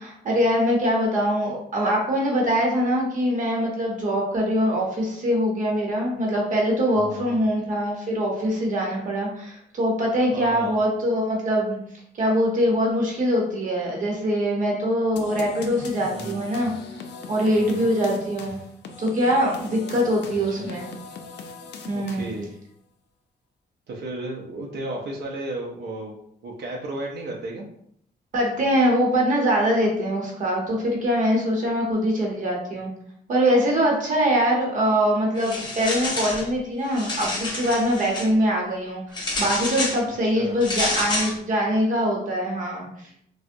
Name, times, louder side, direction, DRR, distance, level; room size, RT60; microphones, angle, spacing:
voice 1, 0.0-11.8 12.1-16.7 17.3-18.6 19.0-20.9 21.9-22.3 28.3-32.9 33.3-43.1, equal, 45° right, -2 dB, 0.8 m, -23 dB
voice 2, 6.9-7.4 10.3-10.8 16.1-16.5 17.5-17.9 20.5-20.7 21.9-22.5 23.9-26.2 26.4-27.6 40.2-40.6, right 1 dB, 80° right, -2 dB, 0.5 m, -34 dB
sound 1, 15.2-22.5, left 4 dB, 85° left, 0.4 m, -40 dB
sound 2, 35.4-36.5 36.8-38.3 39.1-40.0 40.6-41.3, left 2 dB, 25° left, 0.6 m, -28 dB
3.5 x 2.0 x 2.5 m, 0.71 s
wide cardioid pair, 180°, 18 cm